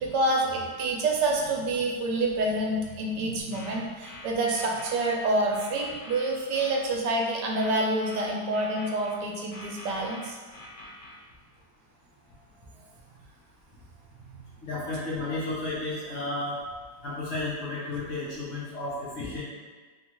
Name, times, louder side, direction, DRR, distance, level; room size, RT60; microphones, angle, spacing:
voice 1, 0.0-10.4, right 2 dB, 80° right, 0 dB, 1.2 m, -27 dB
sound 1, 3.4-5.2 5.5-6.8 7.5-9.2 9.5-11.1, left 2 dB, 90° left, 1.5 m, -45 dB
voice 2, 14.6-16.6 17.0-19.4, left 2 dB, 60° left, -8 dB, 0.9 m, -32 dB
3.7 x 2.3 x 2.9 m, 1.4 s
omnidirectional pair, 1.8 m